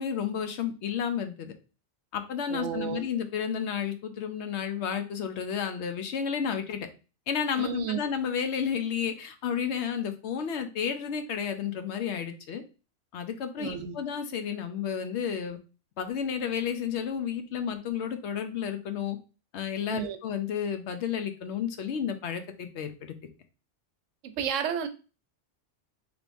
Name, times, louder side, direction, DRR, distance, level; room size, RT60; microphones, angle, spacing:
voice 1, 0.0-1.5 2.1-6.9 7.3-12.6 13.1-15.6 16.0-19.2 19.5-23.1, left 7 dB, 70° left, 8 dB, 0.8 m, -31 dB
voice 2, 2.5-3.1 7.6-8.1 13.6-13.9 19.9-20.2 24.2-24.9, right 8 dB, 90° right, 8 dB, 0.9 m, -32 dB
3.4 x 3.1 x 2.5 m, 0.33 s
omnidirectional pair, 1.2 m